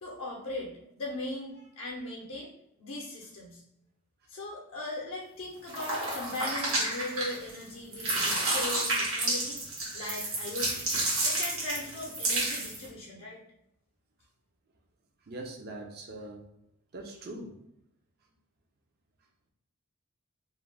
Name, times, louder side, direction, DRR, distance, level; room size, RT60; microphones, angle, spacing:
voice 1, 0.0-2.5 2.8-3.6 4.3-9.6 9.9-10.9 11.2-13.4, left 2 dB, 65° left, -3 dB, 0.5 m, -39 dB
sound 1, 5.7-7.6 7.9-12.9, right 2 dB, 75° right, 1.0 m, -30 dB
voice 2, 15.3-16.5 16.9-17.6, right 2 dB, 45° right, 2 dB, 0.4 m, -42 dB
2.4 x 2.1 x 3.2 m, 0.77 s
head